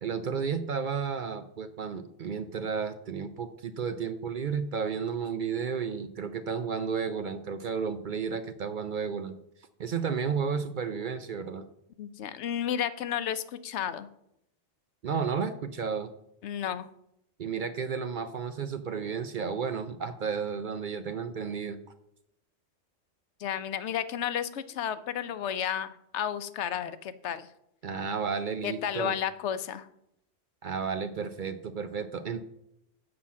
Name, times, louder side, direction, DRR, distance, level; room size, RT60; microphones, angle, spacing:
voice 1, 0.0-9.4 9.8-11.6 15.0-16.1 17.4-21.8 27.8-29.2 30.6-32.4, right 6 dB, 55° right, 10 dB, 0.6 m, -32 dB
voice 2, 12.0-14.1 16.4-16.9 23.4-27.5 28.6-29.9, left 9 dB, 75° left, 13 dB, 0.9 m, -32 dB
7.7 x 5.8 x 7.2 m, 0.78 s
omnidirectional pair, 1.2 m